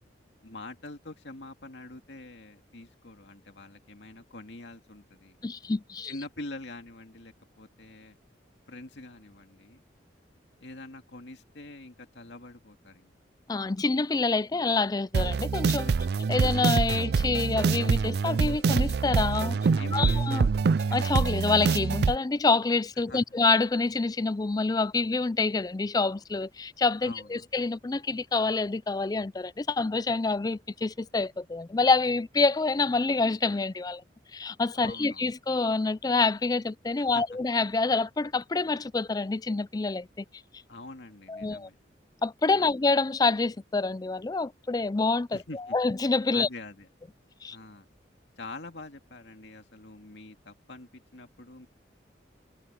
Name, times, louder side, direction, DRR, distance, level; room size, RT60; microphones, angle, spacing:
voice 1, 0.4-5.4 6.0-8.2 8.7-9.8 10.6-13.1 15.8-16.0 19.5-20.7 23.1-23.2 27.0-27.5 34.8-35.3 37.0-37.2 40.7-41.7 42.5-42.7 45.3-45.8 46.3-46.9 47.5-47.9 48.4-51.7, left 2 dB, 75° left, 2.3 m, -45 dB
voice 2, 5.4-6.1 13.5-15.9 16.3-19.6 19.9-20.5 20.9-34.0 34.3-40.2 41.3-41.7 42.2-45.4 45.7-46.5 47.4-47.6, left 3 dB, 20° left, 0.4 m, -27 dB
sound 1, 15.1-22.2, right 5 dB, 60° right, 0.4 m, -25 dB
head